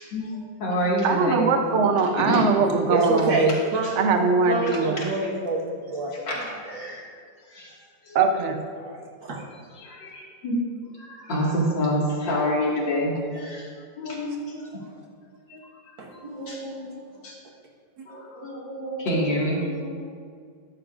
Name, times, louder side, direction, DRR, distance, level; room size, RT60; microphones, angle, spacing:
voice 1, 0.0-1.4 2.3-2.5 5.0-5.1 6.3-7.1 7.5-7.8 8.0-8.2 9.8-10.6 10.9-13.7 14.0-14.4 14.7-14.8 15.5-15.6 16.1-17.4 18.1-20.0, equal, 75° left, -4 dB, 2.8 m, -28 dB
voice 2, 1.0-3.5 4.0-5.1 8.1-8.7, right 4 dB, 50° right, 5 dB, 0.9 m, -22 dB
voice 3, 2.6-4.0 4.4-6.9 8.8-9.4 14.5-15.0 15.5-15.6 16.0-17.3, right 2 dB, 80° right, -2 dB, 2.2 m, -28 dB
14.0 x 11.0 x 2.5 m, 2.2 s
omnidirectional pair, 2.0 m